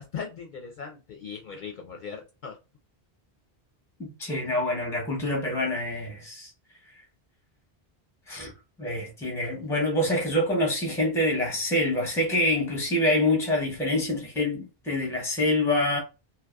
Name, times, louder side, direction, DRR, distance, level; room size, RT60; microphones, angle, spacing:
voice 1, 0.0-2.6, left 6 dB, 60° left, 0.6 m, -39 dB
voice 2, 4.0-6.5 8.3-8.5 8.8-16.0, left 1 dB, 5° left, 0.6 m, -26 dB
2.7 x 2.2 x 2.2 m
omnidirectional pair, 1.0 m